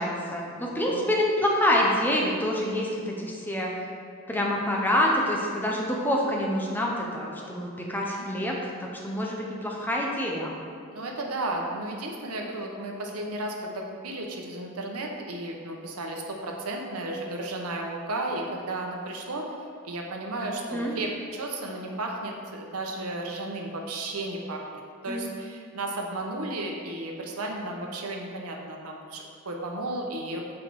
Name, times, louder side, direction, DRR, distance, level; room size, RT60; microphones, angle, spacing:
voice 1, 0.0-3.7 4.3-10.5 20.6-21.0 25.1-25.2, left 1 dB, 10° left, -2 dB, 0.8 m, -27 dB
voice 2, 0.6-1.1 8.1-8.3 10.9-19.5 19.8-30.4, right 2 dB, 90° right, 1 dB, 0.9 m, -34 dB
6.2 x 4.8 x 4.7 m, 2.3 s
head